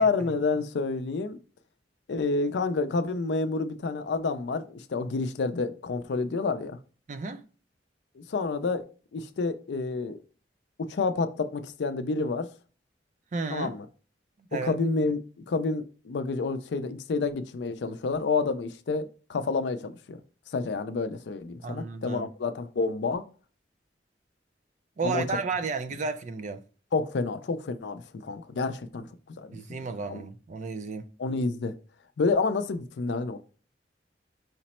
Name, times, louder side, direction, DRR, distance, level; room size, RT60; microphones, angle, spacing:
voice 1, 0.0-1.4 2.1-6.8 8.2-10.2 10.9-12.5 13.5-13.9 14.6-15.2 15.5-20.2 20.5-23.2 25.0-25.4 26.9-29.8 30.1-30.2 31.2-31.7 32.2-33.4, left 3 dB, 70° left, 0.4 m, -29 dB
voice 2, 7.1-7.4 13.3-13.8 14.5-14.7 21.6-22.3 25.0-26.6 29.5-31.1, right 4 dB, 40° right, 0.4 m, -32 dB
5.0 x 2.0 x 4.2 m
head